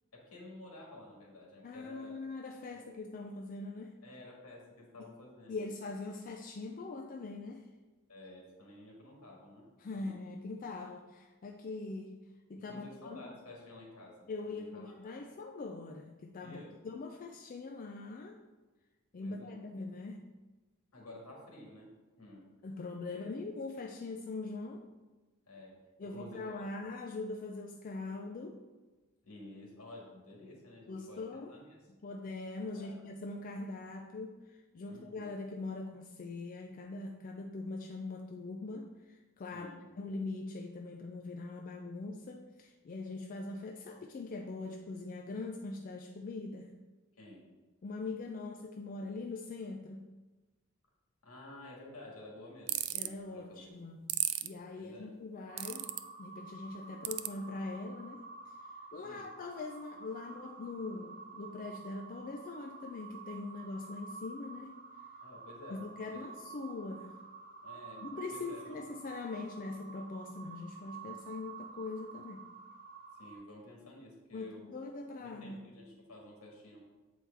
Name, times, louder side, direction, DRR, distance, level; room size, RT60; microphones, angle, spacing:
voice 1, 0.1-2.2 2.7-2.8 4.0-5.5 8.1-9.7 10.0-10.1 12.6-15.2 16.4-16.7 19.2-19.6 20.9-21.9 22.2-22.5 23.1-23.3 25.5-25.8 26.1-26.6 29.2-31.8 32.7-33.0 34.8-35.3 39.5-39.9 47.2-47.5 51.2-53.7 54.8-55.1 56.7-56.9 59.0-59.3 65.2-65.8 66.1-66.3 67.6-68.8 73.2-74.7 75.2-76.8, left 1 dB, 75° left, -2 dB, 1.9 m, -52 dB
voice 2, 1.6-4.0 5.5-7.7 9.8-12.2 12.5-13.3 14.3-18.4 19.1-20.2 22.6-24.9 26.0-28.6 30.9-31.5 32.0-39.7 40.0-46.7 47.8-50.0 52.9-54.1 54.4-55.9 56.2-58.5 58.9-64.8 65.7-67.2 68.0-72.5 74.3-75.6, left 3 dB, 40° left, 3 dB, 0.4 m, -42 dB
sound 1, 52.7-53.1 54.1-54.5 55.6-56.0 57.0-57.3, right 14 dB, 75° right, 0.4 m, -32 dB
sound 2, 55.5-73.4, right 5 dB, 40° right, 0.8 m, -50 dB
7.2 x 4.6 x 3.4 m, 1.2 s
head